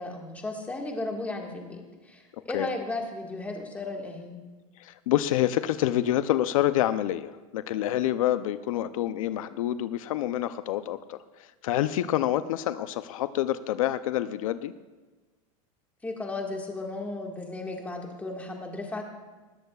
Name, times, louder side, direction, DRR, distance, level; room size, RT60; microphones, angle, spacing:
voice 1, 0.0-4.4 16.0-19.0, left 2 dB, 10° left, 1 dB, 1.7 m, -35 dB
voice 2, 4.8-14.7, left 13 dB, 80° left, 13 dB, 0.5 m, -27 dB
20.0 x 13.5 x 2.4 m, 1.3 s
supercardioid pair, 145°, 17 cm